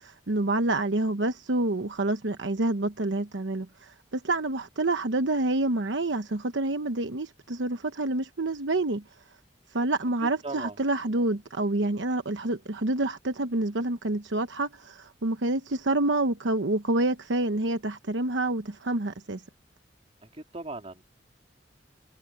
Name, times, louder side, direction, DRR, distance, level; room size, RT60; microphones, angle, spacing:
voice 1, 0.0-9.0 9.7-19.4, right 2 dB, 80° right, 1.0 m, -28 dB
voice 2, 10.4-10.8 20.3-21.0, right 2 dB, 35° right, 3.5 m, -38 dB
head